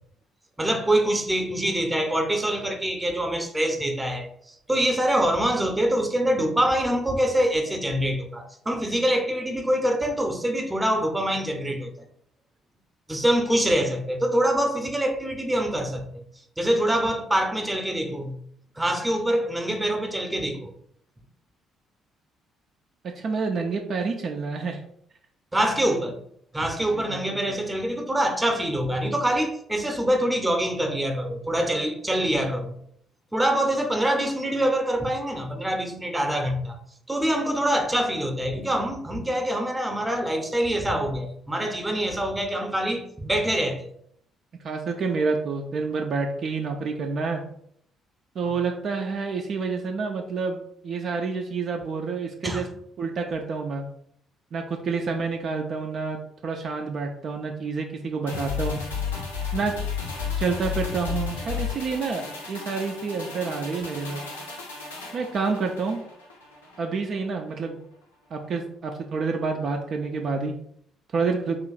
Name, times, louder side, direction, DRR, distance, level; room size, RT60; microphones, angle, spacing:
voice 1, 0.6-12.1 13.1-16.2 16.6-18.4 18.8-20.7 25.5-26.2 26.5-32.7 33.3-36.8 37.1-43.9 52.4-52.7, right 1 dB, 10° right, 0.7 m, -25 dB
voice 2, 23.2-24.8 26.9-27.2 27.5-27.6 44.6-47.4 48.4-52.7 53.0-53.9 54.5-56.2 56.4-58.8 59.5-59.7 60.4-64.2 65.1-66.0 66.8-67.8 68.3-70.5 71.1-71.6, right 4 dB, 50° right, 0.4 m, -28 dB
sound 1, 58.3-66.8 67.2-67.3, left 6 dB, 80° left, 0.5 m, -33 dB
3.0 x 2.5 x 3.9 m
figure-of-eight pair, 45°, 0 cm